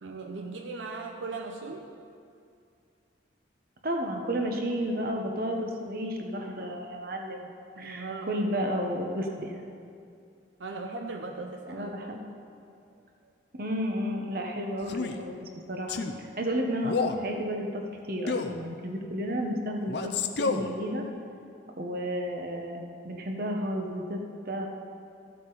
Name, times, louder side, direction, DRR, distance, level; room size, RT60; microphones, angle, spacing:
voice 1, 0.0-1.9 7.8-8.3 10.6-11.9, right 3 dB, 80° right, 3 dB, 0.7 m, -38 dB
voice 2, 3.8-7.5 7.8-9.6 11.7-12.2 13.5-17.8 18.1-20.1 20.4-21.1 21.8-24.7, equal, 50° right, 2 dB, 1.1 m, -32 dB
Male speech man speaking, 14.8-15.2 15.9-16.2 16.8-17.2 18.3-18.6 19.9-20.7, left 4 dB, 60° left, 0.6 m, -29 dB
15.0 x 8.1 x 4.1 m, 2.4 s
head